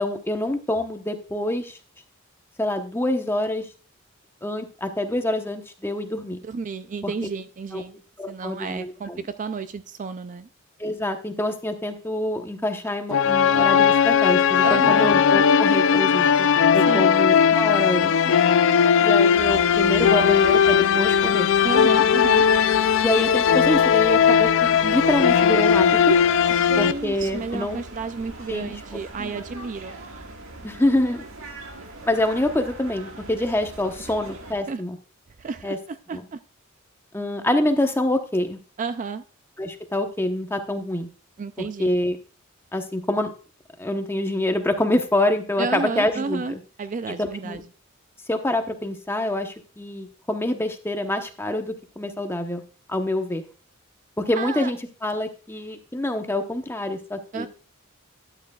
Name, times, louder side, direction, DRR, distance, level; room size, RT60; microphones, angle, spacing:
voice 1, 0.0-1.8 2.6-3.7 4.4-6.4 7.0-7.1 7.7-7.8 8.2-9.2 10.8-16.5 16.7-18.3 19.0-21.5 23.0-26.2 26.8-27.8 28.5-28.7 29.2-29.4 30.6-31.3 32.0-35.0 35.6-35.8 36.1-36.2 37.1-38.6 39.6-41.1 41.6-42.2 42.7-43.3 43.8-46.6 47.1-47.6 48.3-52.6 52.9-53.4 54.2-57.5, left 1 dB, 10° left, 6 dB, 0.9 m, -26 dB
voice 2, 6.4-8.0 8.3-9.1 9.4-10.5 14.6-15.1 16.9-17.1 21.6-22.4 26.5-29.9 34.7-34.8 35.4-36.4 38.8-39.2 41.4-41.9 45.6-47.6 54.4-54.7 57.3-57.5, right 4 dB, 40° right, 12 dB, 0.4 m, -31 dB
sound 1, 13.1-26.9, left 7 dB, 65° left, 0.4 m, -18 dB
sound 2, 19.3-34.5, right 2 dB, 75° right, 1.7 m, -41 dB
12.0 x 9.0 x 2.3 m, 0.36 s
head